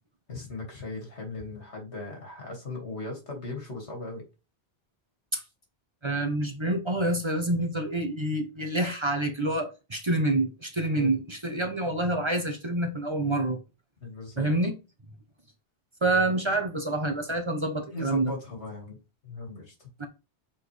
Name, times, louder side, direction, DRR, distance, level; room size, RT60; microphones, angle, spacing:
voice 1, 0.3-4.2 10.9-11.1 14.0-14.5 17.9-19.0 19.2-19.9, left 3 dB, 90° left, 2.4 m, -38 dB
voice 2, 6.0-13.6 14.4-14.7 16.0-18.3 20.0-20.1, right 2 dB, 30° right, 1.0 m, -27 dB
7.1 x 4.2 x 3.3 m
omnidirectional pair, 1.1 m